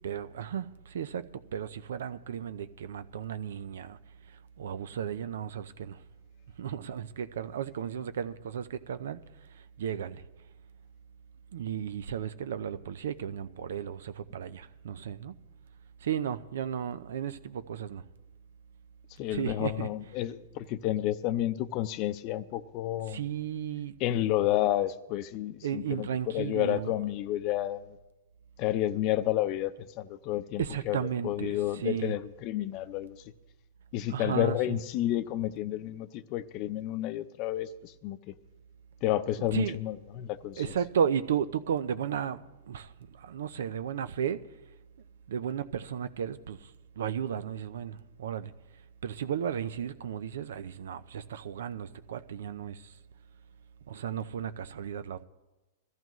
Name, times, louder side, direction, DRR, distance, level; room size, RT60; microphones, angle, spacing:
voice 1, 0.0-4.0 4.6-6.0 6.6-9.2 9.8-10.2 11.5-15.3 16.0-18.0 19.3-19.9 23.1-24.0 25.6-26.9 30.6-32.1 34.1-34.8 39.4-39.8 40.6-42.9 43.2-44.4 45.3-46.6 47.0-48.5 49.0-52.8 53.9-55.2, right 8 dB, 75° right, 0.7 m, -34 dB
voice 2, 19.2-23.2 24.0-28.0 28.6-33.2 33.9-38.3 39.0-40.6, left 13 dB, 45° left, 0.6 m, -31 dB
22.0 x 14.0 x 3.1 m
hypercardioid pair, 130°, 0 cm